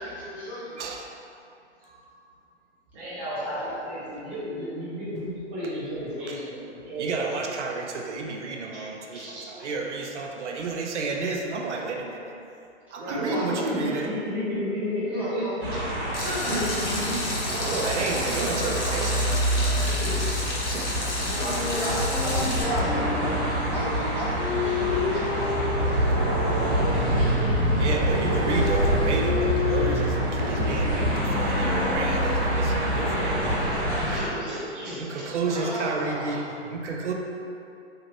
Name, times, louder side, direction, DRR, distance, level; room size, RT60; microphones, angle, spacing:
voice 1, 0.0-0.8 3.3-3.8 13.0-14.0 15.1-16.8 21.4-22.8 23.7-26.8 35.4-36.4, equal, 5° right, -13 dB, 0.9 m, -35 dB
voice 2, 2.9-7.6 8.7-8.8 9.1-9.4 13.1-13.5 14.3-18.0 19.5-21.6 26.9-27.6 28.5-28.7 33.7-35.2 35.7-35.8 36.2-36.4 36.8-37.0, equal, 20° right, -11 dB, 0.4 m, -34 dB
voice 3, 7.0-12.3 12.9-14.1 17.6-19.9 20.7-21.1 27.8-33.3 34.1-34.2 35.0-37.1, right 4 dB, 85° right, 1 dB, 0.5 m, -31 dB
sound 1, 15.6-34.3, equal, 55° right, 1.2 m, -26 dB
Water tap faucet / Sink (filling or washing), 16.1-22.6, left 2 dB, 80° left, 0.9 m, -32 dB
sound 2, 21.3-27.0 27.7-33.2, left 4 dB, 55° left, 0.7 m, -32 dB
3.1 x 2.5 x 2.9 m, 2.6 s
hypercardioid pair, 130°, 34 cm